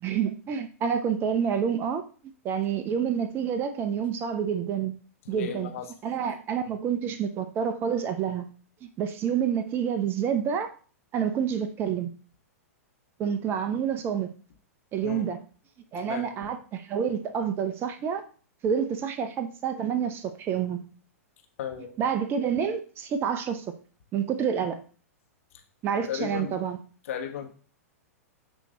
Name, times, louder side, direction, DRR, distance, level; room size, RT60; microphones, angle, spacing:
voice 1, 0.0-2.0 2.4-4.9 5.3-5.7 6.0-8.5 8.8-10.7 11.1-12.1 13.2-14.3 14.9-15.4 15.9-18.2 18.6-20.9 22.0-23.7 24.1-24.8 25.8-26.8, right 7 dB, 30° right, 0.6 m, -28 dB
voice 2, 5.2-5.9 15.0-15.3 16.0-16.3 21.6-21.9 26.1-26.6 27.0-27.5, left 8 dB, 60° left, 1.3 m, -34 dB
8.8 x 3.0 x 4.1 m
hypercardioid pair, 105°, 8 cm